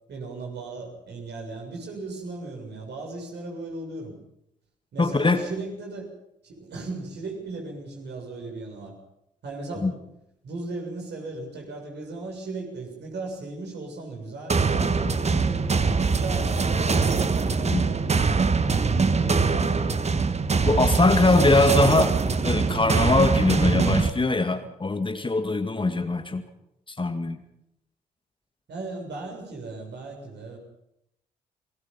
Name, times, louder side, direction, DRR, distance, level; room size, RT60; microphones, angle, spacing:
voice 1, 0.1-4.1 4.9-6.1 6.4-8.9 9.4-10.0 10.4-18.0 18.8-20.1 21.0-21.8 28.7-30.6, right 3 dB, 55° right, 2 dB, 7.1 m, -37 dB
voice 2, 5.0-5.4 9.8-9.9 17.6-17.9 20.6-22.2 22.4-26.4 27.0-27.4, left 2 dB, 25° left, 8 dB, 2.1 m, -22 dB
sound 1, 14.5-24.1, right 4 dB, 30° right, 1.6 m, -23 dB
28.5 x 20.0 x 5.6 m, 0.81 s
figure-of-eight pair, 40°, 21 cm